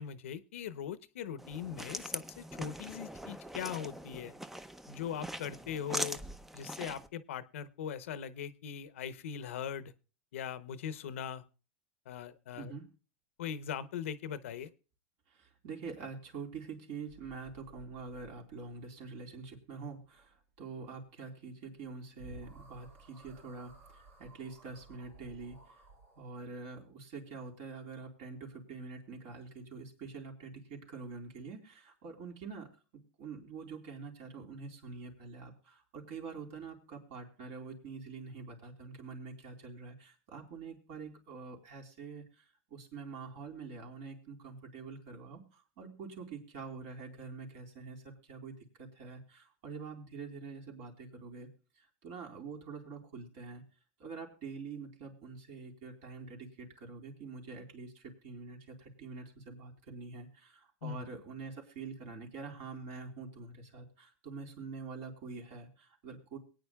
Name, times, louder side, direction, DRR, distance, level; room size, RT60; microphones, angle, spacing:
voice 1, 0.0-4.3 4.9-6.2 6.5-9.9 10.3-11.4 12.1-12.7 13.4-14.7 60.8-61.1, left 8 dB, 85° left, 13 dB, 0.8 m, -40 dB
sound 1, 1.4-7.1, equal, 5° right, 0.5 m, -42 dB
voice 2, 15.3-25.8 26.2-42.4 42.7-51.5 51.8-53.6 54.0-66.4, right 4 dB, 60° right, 2 dB, 4.1 m, -46 dB
sound 2, 17.1-18.7 21.8-21.9 22.2-26.2, right 2 dB, 80° right, 5.3 m, -56 dB
22.5 x 9.3 x 2.3 m, 0.35 s
supercardioid pair, 125°, 7 cm